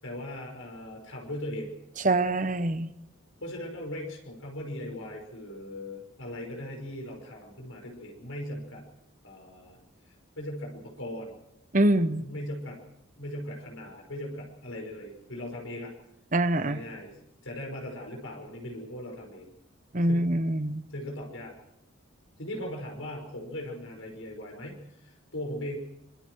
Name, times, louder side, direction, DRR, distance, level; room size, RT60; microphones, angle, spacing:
voice 1, 0.0-1.7 3.4-8.8 9.2-9.8 10.1-11.3 12.2-12.8 13.2-15.9 16.6-19.5 20.1-20.3 20.9-21.5 22.4-25.8, left 1 dB, 80° left, 1 dB, 5.7 m, -39 dB
voice 2, 2.0-2.9 11.7-12.3 16.3-16.8 19.9-20.8, right 1 dB, 40° right, 12 dB, 1.1 m, -24 dB
25.5 x 24.5 x 4.8 m, 0.82 s
head